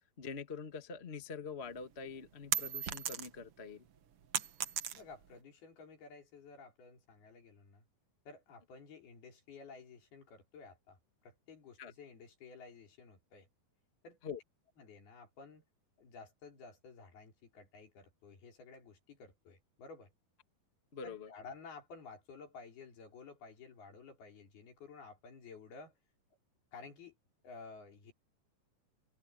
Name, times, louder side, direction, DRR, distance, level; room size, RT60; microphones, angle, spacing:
voice 1, 0.2-3.8 11.8-11.9 14.2-14.4 20.9-21.3, left 5 dB, 30° left, 1.2 m, -44 dB
sound 1, 1.7-3.5 3.9-5.3, right 9 dB, 85° right, 1.2 m, -37 dB
voice 2, 4.9-7.9 8.3-11.0 11.2-13.5 14.0-14.2 14.8-15.6 16.0-20.1 21.0-26.0 26.7-27.1 27.4-28.1, left 4 dB, 75° left, 6.9 m, -53 dB
open air
omnidirectional pair, 4.4 m